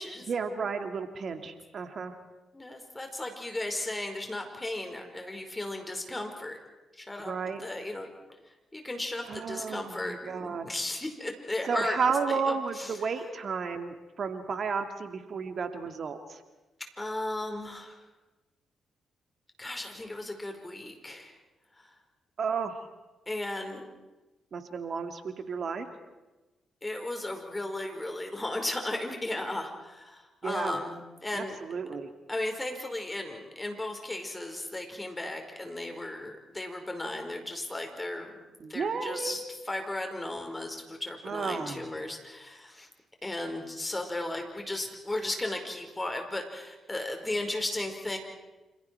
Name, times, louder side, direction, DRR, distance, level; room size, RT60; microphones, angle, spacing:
voice 1, 0.3-2.1 7.2-7.6 9.3-10.7 11.7-16.4 22.4-22.7 24.5-25.9 30.4-30.8 31.3-32.1 38.6-39.4 41.2-41.9, right 5 dB, 55° right, 7 dB, 2.5 m, -32 dB
voice 2, 2.5-6.6 6.9-7.3 7.6-8.1 8.7-12.0 12.3-13.0 17.0-18.0 19.6-21.4 21.8-21.9 23.3-23.8 26.8-31.0 31.2-31.6 32.3-38.4 38.7-42.9 43.2-48.2, left 1 dB, 20° left, 4 dB, 5.1 m, -35 dB
28.0 x 27.0 x 4.7 m, 1.1 s
hypercardioid pair, 40°, 0 cm